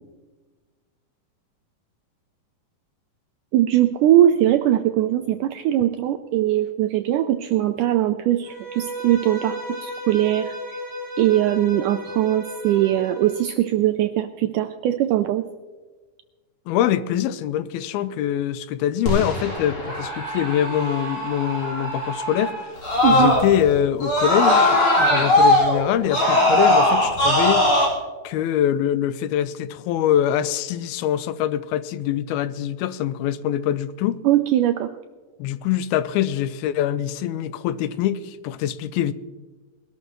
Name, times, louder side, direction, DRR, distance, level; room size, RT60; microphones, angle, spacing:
voice 1, 3.5-10.8 11.2-15.4 23.0-23.4 34.2-34.9, right 12 dB, 85° right, 1.8 m, -20 dB
Bowed string instrument, 8.4-13.4, equal, 35° right, 4.9 m, -34 dB
voice 2, 16.7-22.7 23.1-27.7 28.2-34.2 35.4-39.1, left 11 dB, 90° left, 2.6 m, -24 dB
Screaming, 19.1-23.7 24.0-27.9, left 1 dB, 35° left, 4.5 m, -20 dB
21.5 x 12.5 x 3.1 m
omnidirectional pair, 4.2 m